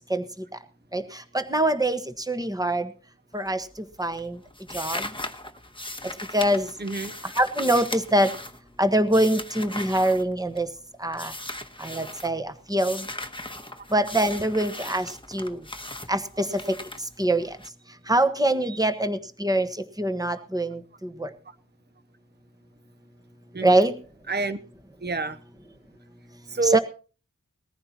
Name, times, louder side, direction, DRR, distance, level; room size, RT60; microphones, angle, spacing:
voice 1, 0.9-2.9 3.3-3.7 4.0-4.4 4.7-5.1 6.3-6.7 7.4-8.3 8.8-10.7 11.0-11.3 11.8-13.0 13.9-15.6 16.1-16.8 17.2-17.5 18.1-19.7 20.0-20.8 21.2-21.3 23.6-23.9 26.6-26.8, right 1 dB, 10° right, 9 dB, 1.3 m, -24 dB
sound 1, 3.3-3.8 4.0-10.8 11.1-12.3 12.8-17.7, left 1 dB, 15° left, 1.1 m, -38 dB
voice 2, 6.8-7.1 18.7-18.8 23.5-23.8 24.3-24.6 25.0-25.4 26.5-26.8, right 3 dB, 30° right, 13 dB, 0.8 m, -27 dB
20.0 x 14.5 x 2.9 m, 0.36 s
wide cardioid pair, 45°, 33 cm